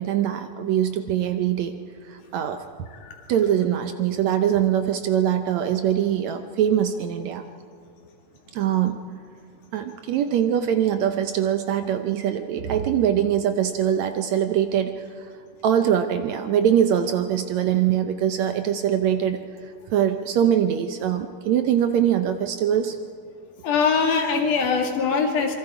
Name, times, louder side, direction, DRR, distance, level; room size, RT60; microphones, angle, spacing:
voice 1, 0.0-1.7 2.0-2.6 3.3-7.5 8.5-9.0 9.7-15.3 15.6-23.0, right 9 dB, 70° right, 8 dB, 1.8 m, -23 dB
voice 2, 23.6-25.5, left 5 dB, 70° left, 2 dB, 3.6 m, -22 dB
26.5 x 23.0 x 4.9 m, 2.2 s
omnidirectional pair, 3.7 m